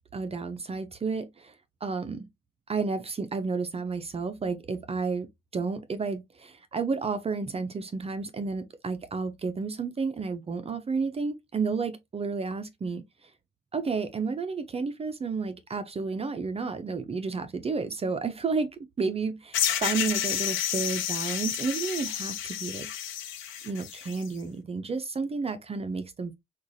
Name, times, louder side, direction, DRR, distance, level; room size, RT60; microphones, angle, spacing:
voice 1, 0.1-1.5 1.8-2.3 2.7-5.3 5.5-13.3 13.7-18.7 19.0-22.9 23.6-26.4, right 4 dB, 30° right, 0.5 m, -31 dB
sound 1, 19.5-24.3, left 10 dB, 85° left, 0.7 m, -30 dB
4.5 x 2.3 x 2.6 m
cardioid pair, 90°, 20 cm